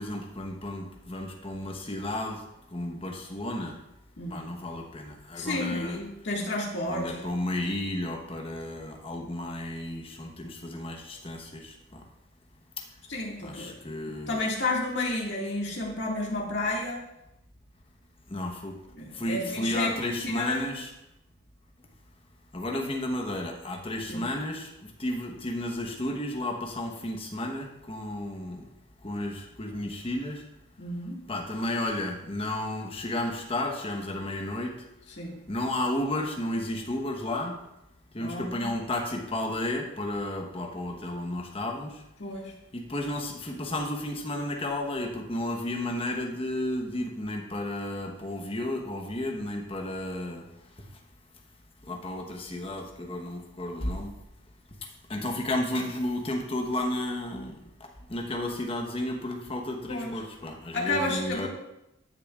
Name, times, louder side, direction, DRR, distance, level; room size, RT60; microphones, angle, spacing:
voice 1, 0.0-2.4 2.7-3.7 4.3-6.0 6.9-12.0 13.4-14.4 18.3-18.7 19.1-20.9 22.5-24.7 25.0-28.6 29.0-30.4 31.3-34.7 35.5-37.5 38.1-41.9 42.7-50.4 51.9-54.1 55.1-57.5 58.1-61.5, left 1 dB, 25° left, 2 dB, 1.0 m, -32 dB
voice 2, 5.4-7.3 13.1-13.7 14.3-17.0 19.0-20.7 24.1-24.2 30.8-31.2 35.2-35.4 38.2-38.7 42.2-42.5 59.9-60.2 60.7-61.5, left 2 dB, 55° left, -2 dB, 1.9 m, -31 dB
14.5 x 6.8 x 2.4 m, 0.88 s
head